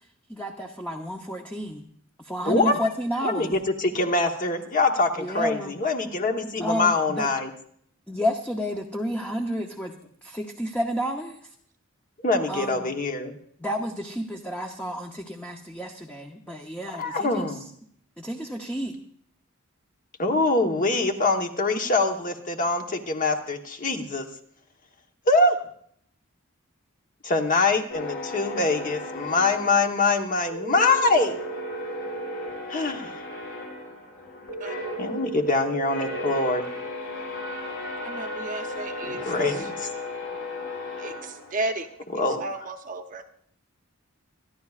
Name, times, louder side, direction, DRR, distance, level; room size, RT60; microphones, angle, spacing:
voice 1, 0.3-1.8 2.2-3.5 5.2-5.8 6.6-7.3 8.1-11.5 12.5-12.9 13.6-17.6 18.2-19.0, equal, 5° left, 1 dB, 0.8 m, -31 dB
voice 2, 2.4-2.8 3.2-7.5 12.2-13.4 17.0-17.7 20.2-24.3 25.3-25.6 27.2-31.4 32.7-33.2 35.0-36.6 39.1-39.9 42.1-42.5, left 3 dB, 40° left, 4 dB, 1.1 m, -24 dB
sound 1, 27.9-30.4 30.7-41.9, left 2 dB, 65° left, 6.0 m, -36 dB
sound 2, 30.5-32.5 34.5-36.5, right 4 dB, 85° left, 5.3 m, -35 dB
voice 3, 38.0-39.7 41.0-41.9 42.1-43.2, right 2 dB, 40° right, 6 dB, 0.9 m, -34 dB
26.5 x 10.5 x 2.4 m, 0.64 s
head